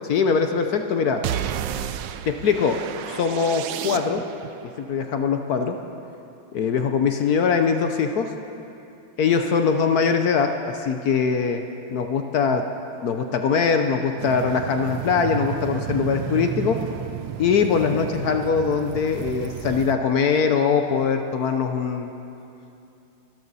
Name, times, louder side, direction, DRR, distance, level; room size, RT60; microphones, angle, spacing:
voice 1, 0.1-1.2 2.2-2.8 3.1-4.2 4.8-5.8 6.5-8.3 9.2-11.6 11.9-12.6 13.0-16.8 17.4-22.1, left 6 dB, 65° left, 6 dB, 1.0 m, -22 dB
sound 1, 1.2-4.5, right 10 dB, 70° right, 1.1 m, -31 dB
sound 2, 14.2-19.9, right 11 dB, 90° right, 1.5 m, -32 dB
23.5 x 13.0 x 4.1 m, 2.7 s
omnidirectional pair, 2.3 m